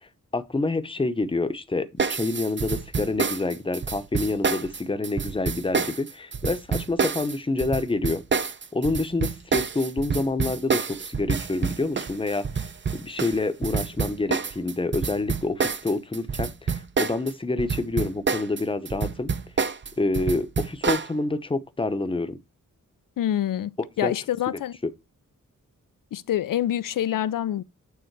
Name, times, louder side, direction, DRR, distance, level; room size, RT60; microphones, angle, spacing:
voice 1, 0.3-8.2 8.7-12.5 12.9-19.3 20.0-22.4 24.0-24.1, left 2 dB, 15° left, 0.8 m, -27 dB
sound 1, 2.0-17.3 17.6-21.1, right 5 dB, 35° right, 0.6 m, -27 dB
voice 2, 23.2-24.8 26.1-27.6, left 11 dB, 85° left, 0.5 m, -26 dB
9.0 x 3.7 x 4.6 m
wide cardioid pair, 150°, 32 cm